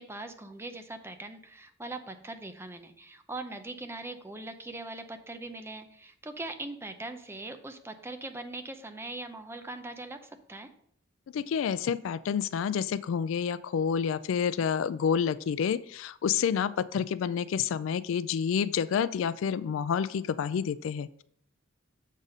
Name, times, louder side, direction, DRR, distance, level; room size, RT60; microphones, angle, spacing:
voice 1, 0.0-10.7, right 2 dB, 15° right, 7 dB, 0.5 m, -41 dB
voice 2, 11.3-21.2, left 7 dB, 80° left, 17 dB, 0.3 m, -29 dB
7.3 x 4.0 x 5.2 m, 0.67 s
head